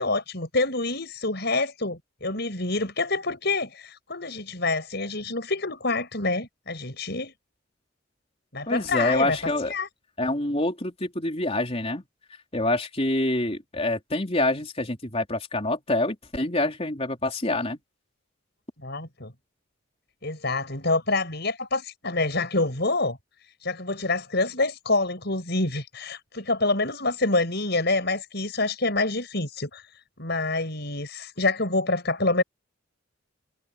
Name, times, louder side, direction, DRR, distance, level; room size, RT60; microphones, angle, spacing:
voice 1, 0.0-7.3 8.5-9.4 9.7-9.9 18.8-19.3 20.2-23.2 23.6-29.9 30.2-32.4, left 2 dB, 55° left, 7.5 m, -27 dB
voice 2, 8.7-9.7 10.2-12.0 12.5-17.8, left 2 dB, 30° left, 3.8 m, -26 dB
head